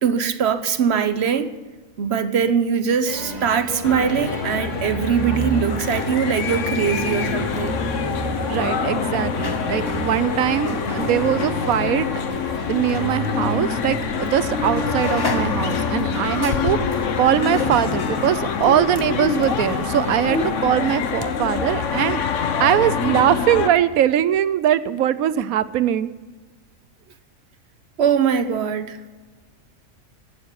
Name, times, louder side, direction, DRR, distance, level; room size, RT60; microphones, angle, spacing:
voice 1, 0.0-1.6 2.0-7.8 28.0-29.0, right 7 dB, 55° right, 11 dB, 1.1 m, -21 dB
sound 1, 3.1-20.5, right 1 dB, 30° right, 2.8 m, -33 dB
sound 2, 3.8-23.7, left 6 dB, 65° left, 1.3 m, -25 dB
sound 3, 5.3-13.1 13.4-13.6 14.3-14.5 14.8-21.3 21.5-21.6, left 3 dB, 20° left, 0.7 m, -35 dB
voice 2, 8.5-12.1 12.7-22.2 22.6-26.1, right 11 dB, 85° right, 15 dB, 1.1 m, -21 dB
12.0 x 9.7 x 10.0 m, 1.3 s
omnidirectional pair, 1.4 m